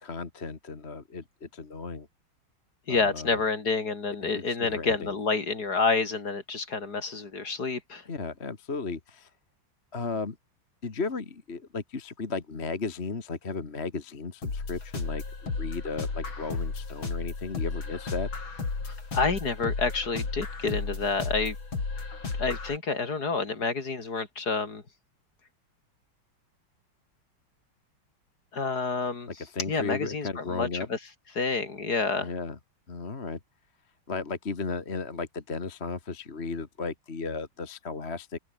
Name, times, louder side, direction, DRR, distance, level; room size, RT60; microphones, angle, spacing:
voice 1, 0.0-2.1 2.9-3.4 4.2-5.1 8.1-9.3 9.9-10.4 10.8-15.2 15.6-18.3 29.3-30.9 32.2-32.6 32.9-33.4 34.1-38.4, left 4 dB, 30° left, 2.0 m, -35 dB
voice 2, 2.9-8.0 18.8-21.5 22.4-24.8 28.5-29.3 29.7-31.0 31.3-32.3, left 4 dB, 50° left, 3.2 m, -29 dB
sound 1, 14.4-22.8, left 4 dB, 70° left, 5.0 m, -33 dB
open air
omnidirectional pair, 2.3 m